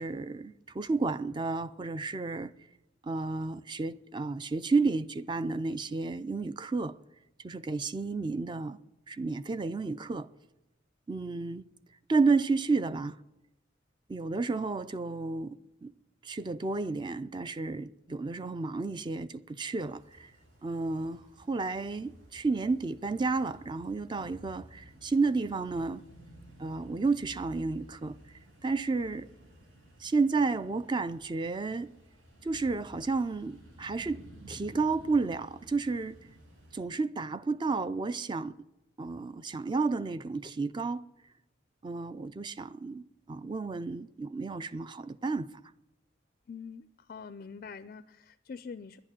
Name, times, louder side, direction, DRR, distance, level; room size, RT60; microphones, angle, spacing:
voice 1, 0.0-2.5 3.0-7.0 7.4-8.8 9.1-10.3 11.1-11.6 12.1-13.2 14.1-15.9 16.2-20.3 20.6-26.0 26.6-28.2 28.6-29.3 30.0-31.9 32.4-34.2 34.5-36.2 36.7-38.5 39.0-41.0 41.8-45.5, right 3 dB, 25° right, 0.4 m, -31 dB
sound 1, 19.8-36.9, equal, 80° right, 3.0 m, -54 dB
voice 2, 46.5-49.0, left 5 dB, 45° left, 0.4 m, -44 dB
11.0 x 8.9 x 9.9 m
head